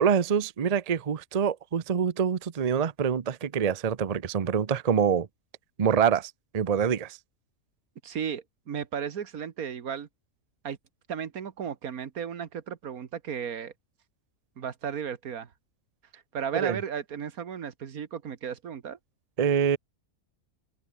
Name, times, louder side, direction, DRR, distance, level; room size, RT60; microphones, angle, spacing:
voice 1, 0.0-5.3 5.8-7.2 16.5-16.8 19.4-19.8, right 7 dB, 35° right, 0.7 m, -25 dB
voice 2, 8.0-10.1 10.6-10.8 11.1-13.7 14.6-15.5 16.1-19.0, right 7 dB, 80° right, 1.8 m, -34 dB
open air
omnidirectional pair, 1.5 m